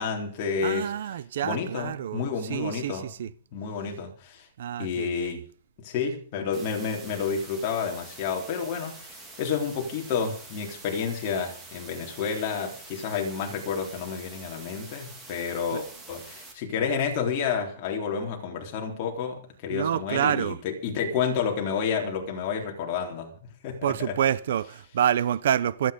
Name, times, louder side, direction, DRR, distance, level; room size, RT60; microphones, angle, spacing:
voice 1, 0.0-0.9 1.4-3.1 3.5-4.5 4.8-5.5 5.8-23.3 23.6-24.2, left 6 dB, 30° left, 3.7 m, -30 dB
voice 2, 0.6-3.3 4.6-5.4 15.7-15.8 19.7-20.6 23.8-25.9, right 10 dB, 60° right, 0.8 m, -27 dB
sound 1, 6.5-16.5, right 2 dB, 10° right, 3.0 m, -46 dB
25.5 x 9.4 x 5.2 m
hypercardioid pair, 170°, 0 cm